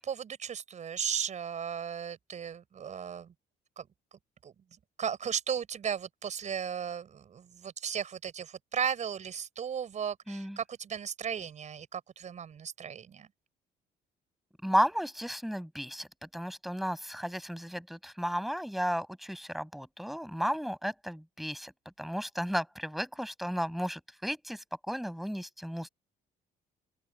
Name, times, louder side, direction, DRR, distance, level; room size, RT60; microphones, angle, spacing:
voice 1, 0.0-3.3 3.8-3.9 4.4-4.5 5.0-13.3, right 8 dB, 45° right, 5.9 m, -35 dB
voice 2, 10.3-10.6 14.6-16.1 16.3-21.7 22.0-25.9, equal, ahead, 7.4 m, -33 dB
open air
cardioid pair, 110°, 17 cm